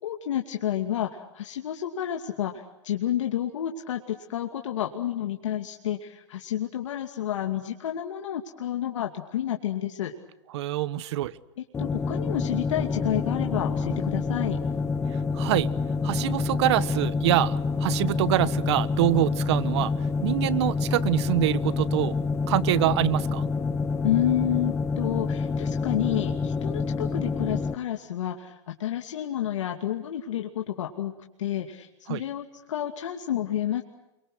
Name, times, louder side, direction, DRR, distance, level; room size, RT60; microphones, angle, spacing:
voice 1, 0.0-10.1 11.8-14.6 24.0-31.1 31.4-33.8, left 11 dB, 85° left, 3 dB, 2.6 m, -30 dB
voice 2, 10.5-11.3 15.3-15.7 16.0-19.9 20.2-22.2 22.5-23.5 32.1-32.2, right 14 dB, 65° right, 16 dB, 1.4 m, -25 dB
sound 1, 11.7-27.8, left 4 dB, 15° left, 1.4 m, -27 dB
30.0 x 24.0 x 6.3 m, 0.94 s
supercardioid pair, 140°, 15 cm